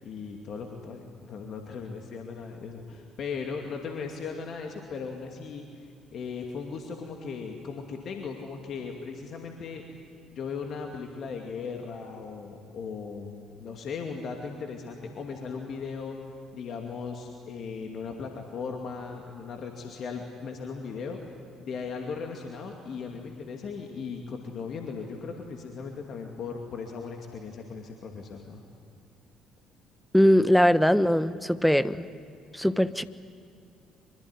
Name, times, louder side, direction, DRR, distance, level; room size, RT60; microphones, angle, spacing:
voice 1, 0.0-9.8 10.3-16.2 16.5-21.2 21.6-28.6, left 5 dB, 50° left, 2 dB, 2.5 m, -37 dB
voice 2, 30.1-32.1 32.5-33.0, equal, ahead, 14 dB, 1.1 m, -21 dB
24.5 x 23.5 x 9.8 m, 2.4 s
figure-of-eight pair, 50°, 0 cm